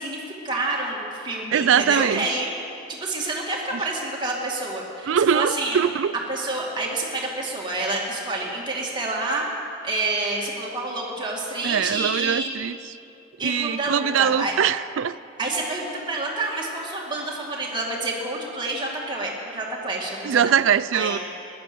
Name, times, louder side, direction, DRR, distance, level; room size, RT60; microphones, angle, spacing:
voice 1, 0.0-2.5 2.9-5.8 6.3-9.5 9.8-12.5 13.4-14.5 15.4-20.5 20.9-21.2, right 2 dB, 20° right, -3 dB, 2.2 m, -28 dB
voice 2, 1.5-2.3 5.1-6.1 11.6-12.8 13.4-15.2 20.2-21.2, right 8 dB, 70° right, 17 dB, 0.4 m, -22 dB
15.0 x 11.0 x 6.9 m, 2.6 s
head